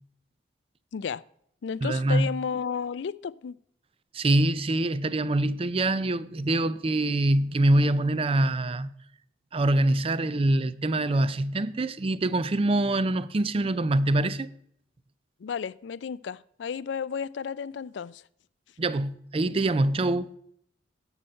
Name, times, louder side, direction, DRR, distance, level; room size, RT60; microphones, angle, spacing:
voice 1, 0.9-1.2 1.6-3.5 15.4-18.2, left 6 dB, 65° left, 0.4 m, -33 dB
voice 2, 1.8-2.3 4.1-8.9 9.5-14.5 18.8-20.3, right 1 dB, 30° right, 0.4 m, -24 dB
11.0 x 7.7 x 5.4 m
head